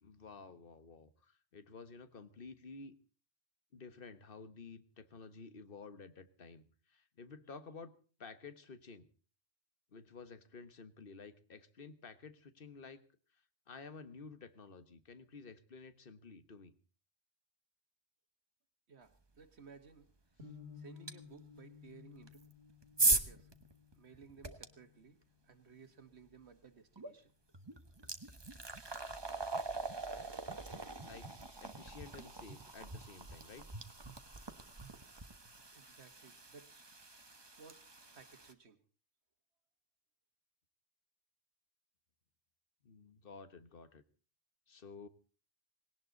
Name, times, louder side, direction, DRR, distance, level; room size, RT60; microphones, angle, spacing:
voice 1, 0.0-2.9 3.7-7.9 8.2-9.1 9.9-13.0 13.7-16.7 28.0-28.1 31.0-31.3 31.6-33.7 42.8-44.0 44.7-45.1, left 4 dB, 55° left, 11 dB, 1.5 m, -52 dB
voice 2, 19.4-20.1 20.7-22.4 23.1-23.5 24.0-27.3 35.7-36.8 37.6-37.8 38.1-38.8, right 5 dB, 75° right, 8 dB, 1.7 m, -58 dB
sound 1, 20.4-26.5, left 6 dB, 60° right, 2.8 m, -57 dB
sound 2, 21.1-21.2 22.2-24.7 27.0-27.1 27.5-38.5, right 3 dB, 25° right, 1.3 m, -40 dB
19.5 x 18.0 x 4.0 m, 0.38 s
omnidirectional pair, 1.1 m